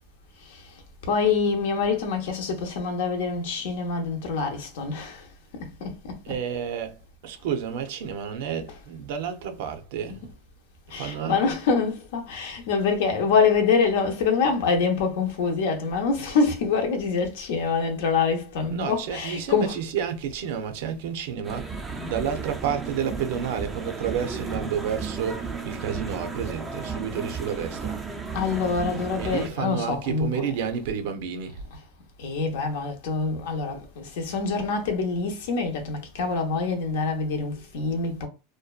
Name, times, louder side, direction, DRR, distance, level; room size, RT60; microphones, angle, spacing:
voice 1, 1.1-5.3 5.6-6.3 10.1-10.2 10.9-19.8 28.3-30.5 31.7-31.8 32.2-38.3, left 5 dB, 70° left, 0.7 m, -25 dB
voice 2, 6.2-7.0 7.2-10.3 10.9-11.5 18.7-21.8 22.0-28.0 29.1-31.6, right 7 dB, 65° right, 0.5 m, -30 dB
sound 1, 21.4-29.5, right 4 dB, 10° right, 0.3 m, -34 dB
2.6 x 2.2 x 2.3 m
supercardioid pair, 155°, 0 cm